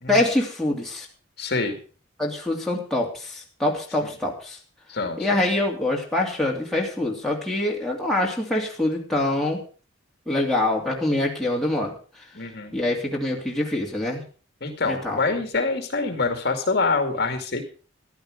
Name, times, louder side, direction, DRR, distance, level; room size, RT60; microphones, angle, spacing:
voice 1, 0.1-1.1 2.2-4.6 5.2-9.6 10.3-12.0 12.7-14.2 14.9-15.2, left 1 dB, ahead, -3 dB, 2.9 m, -25 dB
voice 2, 1.4-1.8 4.9-5.4 12.3-12.7 14.6-17.6, left 3 dB, 55° left, 6 dB, 2.2 m, -25 dB
14.5 x 11.5 x 5.0 m, 0.38 s
head